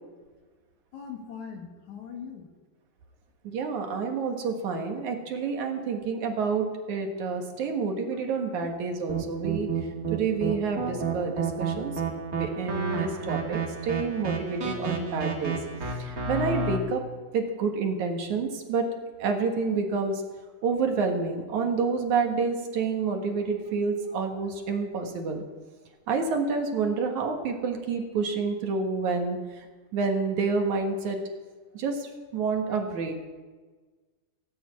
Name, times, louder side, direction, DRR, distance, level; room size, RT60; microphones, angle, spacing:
voice 1, 0.9-2.4 5.7-5.8 8.6-8.7 9.7-9.9 10.5-10.6 24.1-24.2 28.2-28.3 32.7-32.8, left 7 dB, 65° left, 2 dB, 3.2 m, -42 dB
voice 2, 3.4-9.7 10.1-11.9 12.3-15.6 16.0-17.0 17.3-18.9 19.2-20.2 20.6-25.4 26.1-29.7 29.9-31.2 31.7-33.1, right 4 dB, 70° right, 3 dB, 3.0 m, -28 dB
sound 1, 9.1-16.8, right 5 dB, 30° right, 2.0 m, -30 dB
17.0 x 8.6 x 8.3 m, 1.4 s
omnidirectional pair, 3.7 m